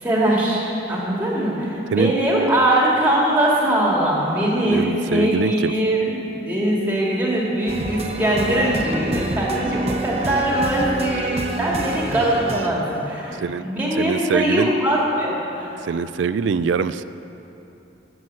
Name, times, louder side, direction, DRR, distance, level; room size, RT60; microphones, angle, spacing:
voice 1, 0.0-15.7, right 1 dB, 10° right, -4 dB, 2.1 m, -21 dB
voice 2, 4.7-5.7 13.4-13.7 14.0-14.7 15.8-17.0, right 5 dB, 90° right, 14 dB, 0.4 m, -23 dB
sound 1, 7.7-12.7, right 1 dB, 35° right, 0.7 m, -28 dB
9.8 x 8.0 x 7.5 m, 3.0 s
head